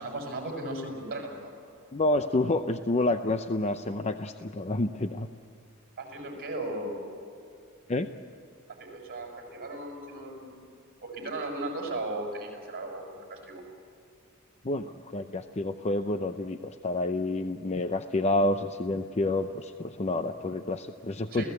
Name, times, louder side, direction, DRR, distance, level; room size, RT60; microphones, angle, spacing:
voice 1, 0.0-1.5 6.0-7.0 8.7-10.7 11.0-13.6 21.3-21.5, right 2 dB, 45° right, 2 dB, 6.6 m, -36 dB
voice 2, 1.9-5.3 7.9-8.1 14.6-21.4, left 2 dB, 30° left, 8 dB, 0.7 m, -29 dB
29.5 x 16.5 x 8.3 m, 2.5 s
head